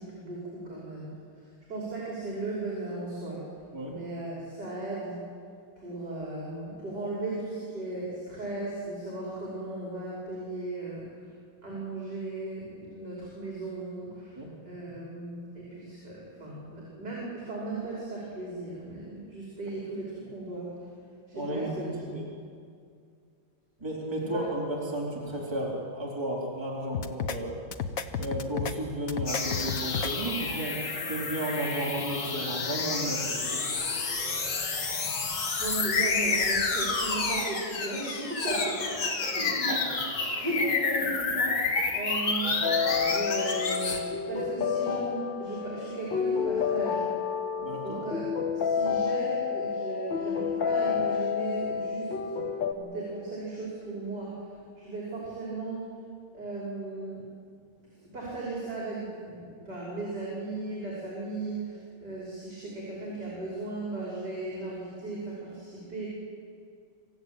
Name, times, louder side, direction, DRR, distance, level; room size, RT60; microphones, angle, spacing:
voice 1, 0.0-3.4 3.9-5.2 5.8-11.3 11.6-14.4 14.6-20.9 21.3-22.2 24.3-24.4 35.6-38.8 39.1-40.1 40.3-42.5 43.0-47.1 47.8-52.3 52.7-56.0 56.3-57.3 58.1-66.1, right 2 dB, 50° right, -5 dB, 6.3 m, -36 dB
voice 2, 21.3-21.7 22.1-22.2 23.8-27.6 28.2-33.7 38.5-38.7 39.7-39.8 47.6-48.0, right 1 dB, 10° right, -4 dB, 4.1 m, -33 dB
sound 1, 26.9-27.4 27.7-28.7 29.1-30.1, left 6 dB, 50° left, 1.3 m, -32 dB
sound 2, 29.3-44.0, left 4 dB, 85° left, 3.1 m, -30 dB
sound 3, 42.6-52.7, left 6 dB, 65° left, 2.3 m, -29 dB
27.0 x 15.5 x 9.0 m, 2.3 s
omnidirectional pair, 2.2 m